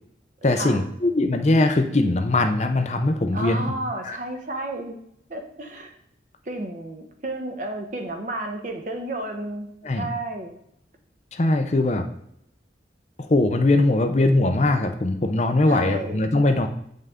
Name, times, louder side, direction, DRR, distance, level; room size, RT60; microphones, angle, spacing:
voice 1, 0.4-3.6 4.0-4.2 9.8-10.1 11.3-12.1 13.3-16.7, left 2 dB, 40° left, 6 dB, 0.6 m, -21 dB
voice 2, 3.3-5.0 5.3-5.9 6.5-10.5 15.7-16.2, right 1 dB, 45° right, 4 dB, 1.0 m, -32 dB
7.9 x 5.5 x 3.6 m, 0.73 s
head